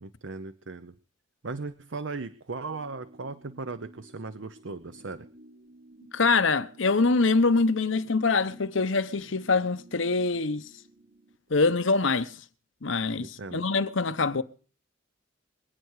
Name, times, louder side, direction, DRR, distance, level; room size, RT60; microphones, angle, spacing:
voice 1, 0.0-0.9 1.4-5.3 13.2-13.7, right 3 dB, 65° right, 0.8 m, -37 dB
sound 1, 2.6-11.4, right 2 dB, 85° right, 5.0 m, -55 dB
voice 2, 6.1-10.6 11.5-12.3 12.8-14.4, left 3 dB, 70° left, 1.0 m, -24 dB
25.5 x 9.4 x 4.8 m
head